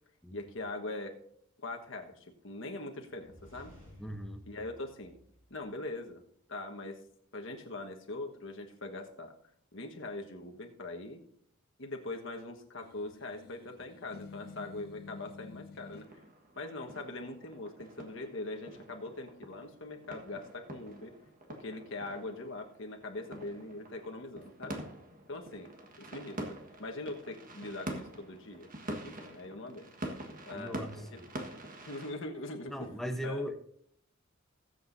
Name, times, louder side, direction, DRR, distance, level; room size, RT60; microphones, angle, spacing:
voice 1, 0.3-1.1 1.6-3.7 4.5-5.2 5.5-6.2 6.5-7.0 7.3-9.3 9.7-11.2 11.8-16.1 16.6-21.1 21.6-24.8 25.3-25.7 26.0-28.7 29.0-29.9 30.5-31.2 31.9-33.5, left 2 dB, 65° left, 3 dB, 1.4 m, -42 dB
sound 1, 3.1-6.0, equal, 25° right, 4.9 m, -56 dB
voice 2, 4.0-4.4 30.5-31.3 32.7-33.6, equal, ahead, 5 dB, 0.8 m, -38 dB
sound 2, 12.8-16.1, left 4 dB, 50° left, 0.4 m, -50 dB
sound 3, 15.8-32.1, right 1 dB, 45° right, 1.4 m, -46 dB
20.0 x 7.9 x 2.7 m, 0.67 s
head